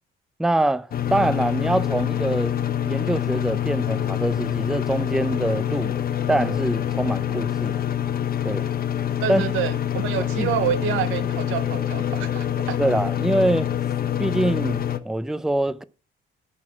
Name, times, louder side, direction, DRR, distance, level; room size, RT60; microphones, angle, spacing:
voice 1, 0.4-2.6 2.9-5.9 6.3-7.8 8.4-8.7 9.3-9.4 10.4-10.5 12.8-13.7 14.2-15.8, right 1 dB, ahead, 0.5 m, -24 dB
sound 1, 0.9-15.0, left 10 dB, 50° left, 0.9 m, -26 dB
voice 2, 9.2-12.8, right 11 dB, 90° right, 0.8 m, -28 dB
11.0 x 4.3 x 7.3 m
cardioid pair, 90°, 20 cm